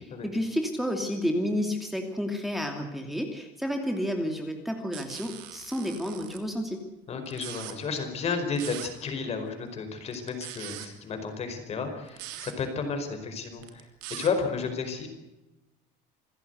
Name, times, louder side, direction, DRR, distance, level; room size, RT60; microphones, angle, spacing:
voice 1, 0.0-6.8, equal, ahead, 3 dB, 2.7 m, -31 dB
sound 1, 4.9-6.4 7.3-7.7 8.6-8.9 10.1-10.9 12.1-12.5 13.6-14.3, right 14 dB, 85° right, 3.3 m, -41 dB
voice 2, 7.1-15.1, left 4 dB, 35° left, 6 dB, 4.9 m, -32 dB
27.0 x 15.5 x 8.2 m, 1.0 s
cardioid pair, 155°, 19 cm